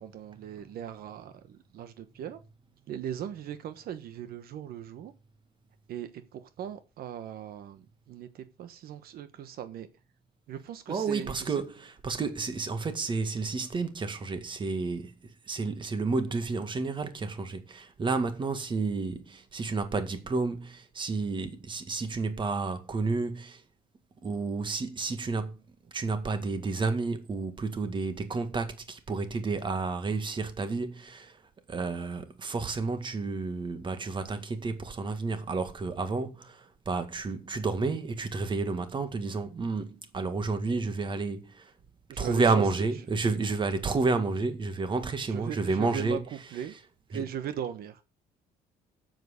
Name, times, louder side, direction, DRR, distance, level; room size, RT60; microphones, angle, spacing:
voice 1, 0.0-2.4 2.9-5.1 5.9-9.9 10.5-11.6 42.1-42.6 45.3-46.2 46.5-46.7 47.1-48.0, right 9 dB, 70° right, 1.1 m, -38 dB
voice 2, 10.9-15.1 15.5-23.6 24.2-25.6 25.9-31.4 31.7-41.7 42.2-46.2 47.1-47.2, right 4 dB, 30° right, 1.9 m, -31 dB
9.3 x 7.9 x 6.5 m
cardioid pair, 125°, 16 cm